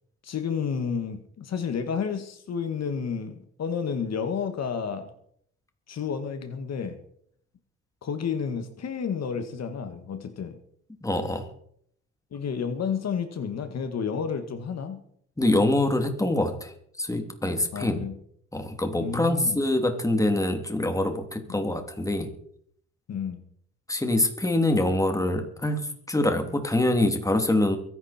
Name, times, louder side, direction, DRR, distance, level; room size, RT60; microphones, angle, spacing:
voice 1, 0.2-5.1 5.9-7.0 8.0-10.6 12.3-15.0 17.7-18.2 19.0-19.6 21.5-21.6 23.1-23.4, left 6 dB, 60° left, 7 dB, 1.9 m, -31 dB
voice 2, 11.0-11.5 15.4-16.7 17.0-18.0 18.5-22.3 23.9-27.8, left 1 dB, 10° left, 5 dB, 3.0 m, -25 dB
23.0 x 11.0 x 4.5 m, 0.67 s
cardioid pair, 90°, 30 cm